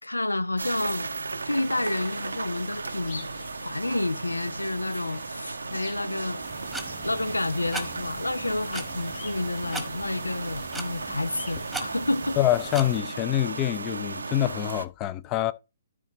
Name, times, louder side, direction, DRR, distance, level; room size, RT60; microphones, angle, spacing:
voice 1, 0.0-1.1 1.4-3.3 3.6-6.4 7.0-12.4, left 2 dB, 80° left, 0.4 m, -29 dB
sound 1, 0.6-14.9, right 3 dB, 70° right, 0.5 m, -36 dB
sound 2, 0.8-11.9, left 4 dB, 45° left, 1.8 m, -48 dB
sound 3, 6.4-13.0, right 1 dB, ahead, 1.3 m, -40 dB
voice 2, 12.4-15.5, left 13 dB, 25° left, 0.5 m, -25 dB
12.5 x 4.9 x 3.0 m
figure-of-eight pair, 125°, 0 cm